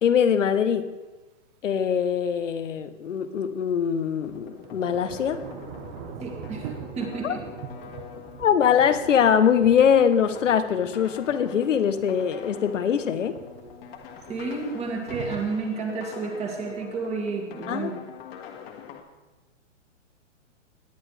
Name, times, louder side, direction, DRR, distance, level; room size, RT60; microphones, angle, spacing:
voice 1, 0.0-0.9 1.6-5.4 7.2-7.4 8.4-13.4 17.7-17.9, left 8 dB, 80° left, 10 dB, 1.1 m, -22 dB
Thunder / Rain, 0.7-0.8 3.7-15.4, right 7 dB, 35° right, 1.1 m, -43 dB
sound 1, 4.2-19.0, left 6 dB, 50° left, 1.8 m, -43 dB
voice 2, 6.2-7.4 14.3-18.0, right 4 dB, 15° right, 2 dB, 2.1 m, -31 dB
18.5 x 9.8 x 3.3 m, 1.2 s
hypercardioid pair, 135°, 37 cm